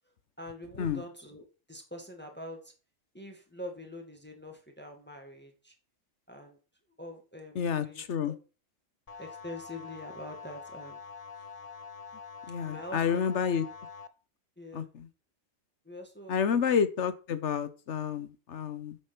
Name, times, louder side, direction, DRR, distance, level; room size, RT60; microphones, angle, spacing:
voice 1, 0.4-2.7 3.1-5.7 6.3-6.6 7.0-8.0 9.2-11.0 11.4-11.5 12.6-13.2 14.6-14.9 15.9-16.5, left 1 dB, 10° left, 3 dB, 1.9 m, -44 dB
voice 2, 7.6-8.3 12.5-13.7 14.7-15.1 16.3-19.0, left 7 dB, 70° left, 13 dB, 1.2 m, -29 dB
sound 1, 9.1-14.1, left 5 dB, 35° left, 0.7 m, -45 dB
8.7 x 6.8 x 6.0 m, 0.35 s
omnidirectional pair, 1.3 m